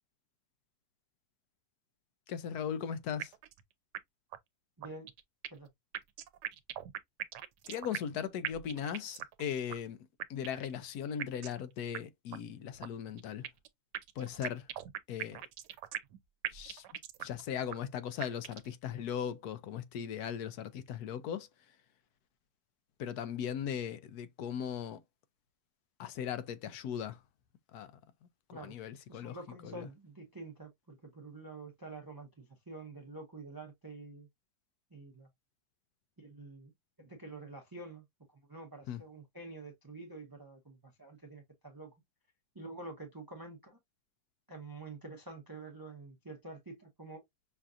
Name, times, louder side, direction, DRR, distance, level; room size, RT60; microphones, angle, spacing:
voice 1, 2.3-3.3 7.7-10.0 10.3-13.5 14.2-14.7 15.1-15.4 16.5-16.8 17.2-21.5 23.0-25.0 26.0-27.2 27.7-27.9 28.5-29.4 29.6-29.9 38.9-39.0, left 8 dB, 75° left, 1.1 m, -38 dB
sound 1, 3.2-3.6 3.9-4.0 4.3-4.4 4.8-5.7 5.9-8.2 8.4-9.4 9.7-9.8 10.2-10.7 11.2-11.6 11.9-12.0 12.3-12.4 12.8-13.7 13.9-16.2 16.4-17.4 17.7-17.8 18.2-18.7, right 12 dB, 90° right, 1.2 m, -40 dB
voice 2, 4.8-5.1 5.5-5.7 28.5-34.3 34.9-35.3 36.2-36.7 37.0-41.9 42.5-43.8 44.5-47.2, right 3 dB, 30° right, 0.4 m, -48 dB
5.8 x 2.4 x 2.5 m
omnidirectional pair, 1.8 m